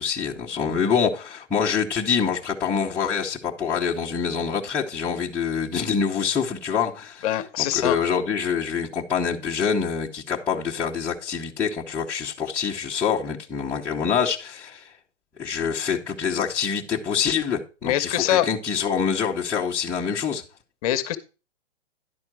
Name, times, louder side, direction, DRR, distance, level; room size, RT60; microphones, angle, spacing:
voice 1, 0.0-7.3 7.6-14.9 15.4-20.4, left 6 dB, 5° left, 0.7 m, -26 dB
voice 2, 7.2-8.0 17.8-18.5 20.8-21.2, left 12 dB, 30° left, 0.9 m, -23 dB
11.0 x 4.3 x 6.0 m
hypercardioid pair, 150°, 36 cm